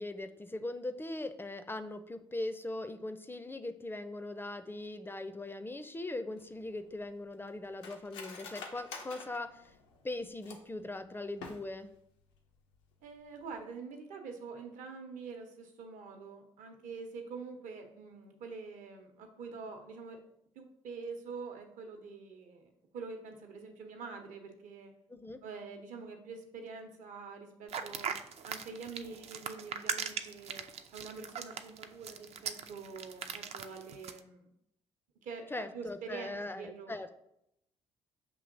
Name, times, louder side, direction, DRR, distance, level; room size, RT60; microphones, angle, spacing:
voice 1, 0.0-9.6 10.0-11.9 25.1-25.4 35.5-37.2, left 2 dB, 15° left, 10 dB, 0.4 m, -40 dB
Cutlery silverware, 6.4-10.8 11.3-12.0 12.3-12.4 12.7-13.1 13.4-13.6, left 4 dB, 85° left, 0.5 m, -48 dB
voice 2, 13.0-20.2 20.6-24.9 25.4-28.1 28.4-30.7 30.9-34.5 35.2-36.9, right 4 dB, 65° right, 4 dB, 0.8 m, -45 dB
sound 1, 27.7-34.2, right 7 dB, 50° right, 0.4 m, -39 dB
6.9 x 2.8 x 2.6 m, 0.78 s
hypercardioid pair, 50°, 14 cm